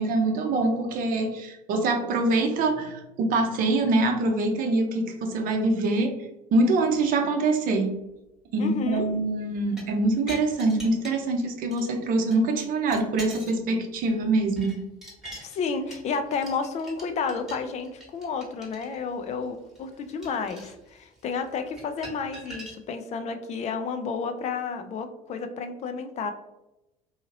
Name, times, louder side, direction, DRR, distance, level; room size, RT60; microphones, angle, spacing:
voice 1, 0.0-6.1 6.5-7.9 8.5-14.8, right 2 dB, 50° right, 4 dB, 0.7 m, -24 dB
voice 2, 8.6-9.1 15.4-26.3, left 5 dB, 40° left, 7 dB, 0.4 m, -31 dB
sound 1, 9.6-11.4 11.7-11.9 12.3-13.6 14.0-22.8, equal, ahead, 1.1 m, -45 dB
2.8 x 2.8 x 2.6 m, 0.93 s
hypercardioid pair, 70°, 19 cm